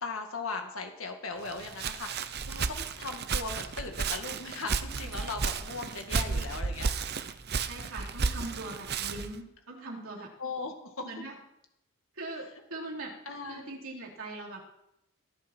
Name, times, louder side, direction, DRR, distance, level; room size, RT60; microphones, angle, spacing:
voice 1, 0.0-6.9 10.4-11.0 13.3-13.6, left 4 dB, 70° left, 4 dB, 1.9 m, -38 dB
Walk footsteps, 1.5-9.4, right 5 dB, 50° right, 0.8 m, -33 dB
voice 2, 5.9-6.5 7.7-10.3 11.0-11.4 12.1-13.1 13.5-14.6, right 2 dB, 75° right, -2 dB, 3.9 m, -41 dB
19.5 x 10.5 x 4.5 m, 0.82 s
head